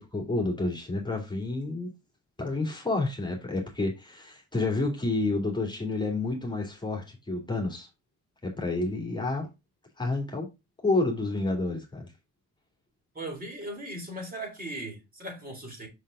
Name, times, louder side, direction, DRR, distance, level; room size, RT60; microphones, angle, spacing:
voice 1, 0.0-1.9 2.4-7.9 8.4-9.5 10.0-10.5 10.8-12.1, left 2 dB, 15° left, 2.7 m, -29 dB
voice 2, 13.1-15.9, right 1 dB, 30° right, 4.5 m, -38 dB
6.1 x 5.6 x 3.7 m
cardioid pair, 90°, 30 cm